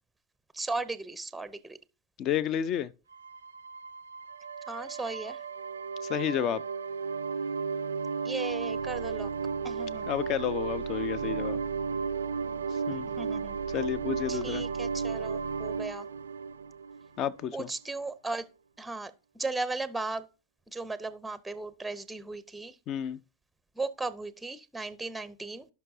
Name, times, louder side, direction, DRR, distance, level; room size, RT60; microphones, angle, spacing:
voice 1, 0.5-1.8 4.7-5.4 8.2-9.3 9.6-10.1 13.1-13.6 14.3-16.1 17.5-18.5 18.8-20.3 20.7-22.8 23.8-25.7, right 3 dB, 5° right, 0.7 m, -36 dB
voice 2, 2.2-2.9 6.0-6.6 10.1-11.6 12.9-13.1 13.7-14.6 17.2-17.7 22.9-23.2, left 10 dB, 35° left, 0.6 m, -31 dB
sound 1, 3.1-17.5, right 5 dB, 70° right, 0.5 m, -34 dB
16.5 x 5.9 x 2.7 m
figure-of-eight pair, 90°, 0 cm